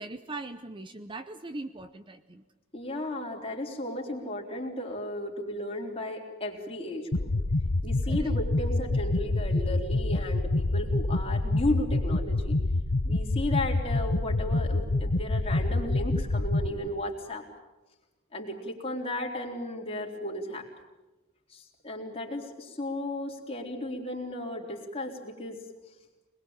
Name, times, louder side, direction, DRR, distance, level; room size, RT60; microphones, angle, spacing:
voice 1, 0.0-2.4 8.1-8.3, right 2 dB, 25° right, 10 dB, 0.8 m, -40 dB
voice 2, 2.7-7.3 7.8-12.6 13.0-17.5 18.3-20.7 21.5-25.6, left 1 dB, 25° left, 0 dB, 3.8 m, -34 dB
sound 1, 7.1-16.7, left 2 dB, 60° left, 1.0 m, -27 dB
26.0 x 20.5 x 8.8 m, 1.1 s
head